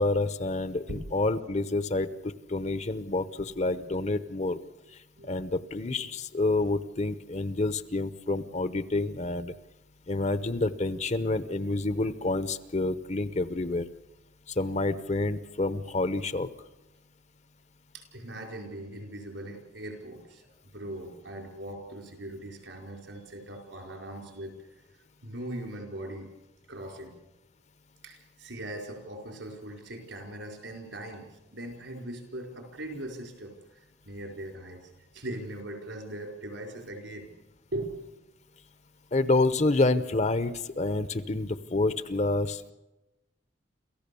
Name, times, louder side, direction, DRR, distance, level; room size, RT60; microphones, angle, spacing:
voice 1, 0.0-2.1 2.5-4.6 5.2-9.5 10.1-13.9 14.5-16.5 39.1-42.7, left 2 dB, 35° left, 13 dB, 0.9 m, -28 dB
voice 2, 17.9-20.5 20.7-24.7 25.2-26.3 26.7-27.1 28.0-33.6 34.0-37.3 37.7-37.9, right 1 dB, 75° right, 3 dB, 4.9 m, -40 dB
27.5 x 15.0 x 7.0 m, 0.98 s
head